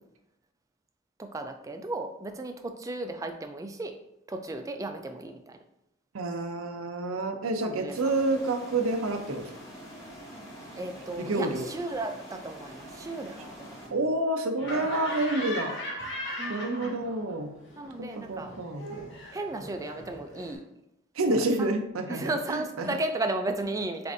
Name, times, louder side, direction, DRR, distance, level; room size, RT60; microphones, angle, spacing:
voice 1, 1.2-4.0 4.3-5.6 7.6-7.9 10.8-13.9 16.4-16.9 17.8-18.5 19.3-20.6 21.6-21.8 22.1-24.1, right 2 dB, 15° right, 6 dB, 0.3 m, -34 dB
voice 2, 6.1-9.5 11.2-11.7 13.9-15.8 16.5-17.5 18.0-18.9 21.2-23.0, right 2 dB, 85° right, 5 dB, 0.6 m, -29 dB
sound 1, 7.9-13.9, equal, 15° left, 1.0 m, -45 dB
Laughter, 14.6-17.4 17.6-20.5, left 1 dB, 60° left, 1.0 m, -38 dB
6.6 x 2.6 x 2.6 m, 0.83 s
head